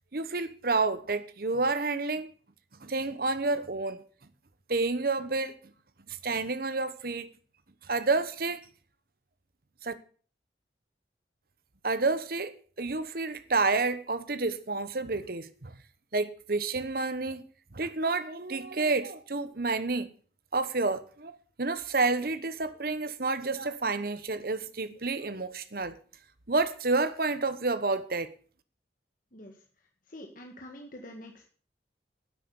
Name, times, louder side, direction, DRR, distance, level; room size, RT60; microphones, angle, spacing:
voice 1, 0.1-2.3 2.8-4.0 4.7-5.6 6.2-7.3 7.9-8.6 9.8-9.9 11.8-15.8 16.1-17.4 17.7-20.1 20.5-26.0 26.5-28.3, right 3 dB, 55° right, 1.0 m, -29 dB
voice 2, 30.1-31.5, left 1 dB, 50° left, 1.7 m, -46 dB
9.9 x 8.5 x 7.0 m
head